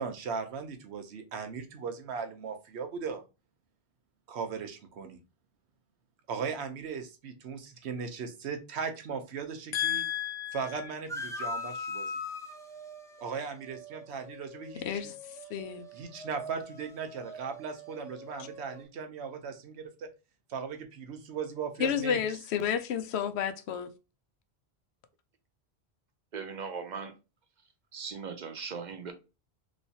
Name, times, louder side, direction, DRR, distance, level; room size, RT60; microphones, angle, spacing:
voice 1, 0.0-3.2 4.3-5.2 6.3-10.0 10.5-12.1 13.2-15.0 15.9-20.1 20.5-22.2, right 6 dB, 90° right, 1.0 m, -38 dB
voice 2, 9.7-10.9 14.8-15.9 21.8-23.9, left 8 dB, 85° left, 0.8 m, -31 dB
sound 1, 11.1-18.8, left 2 dB, 5° left, 0.5 m, -42 dB
voice 3, 26.3-27.1 27.9-29.1, right 5 dB, 55° right, 0.6 m, -38 dB
3.1 x 3.1 x 2.7 m
omnidirectional pair, 1.1 m